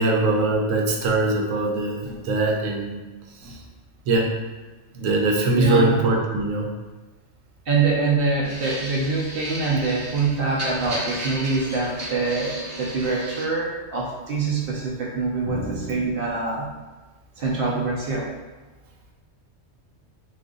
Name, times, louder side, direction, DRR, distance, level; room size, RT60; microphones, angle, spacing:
voice 1, 0.0-3.0 3.4-3.6 4.1-4.3 4.9-6.7 15.5-16.0, right 2 dB, 90° right, 0 dB, 1.0 m, -22 dB
voice 2, 5.5-6.1 7.7-16.7 17.4-18.3, right 3 dB, 60° right, -3 dB, 0.6 m, -24 dB
sound 1, 8.4-13.4, right 1 dB, 45° right, 0.9 m, -34 dB
2.5 x 2.4 x 3.6 m, 1.2 s
omnidirectional pair, 1.3 m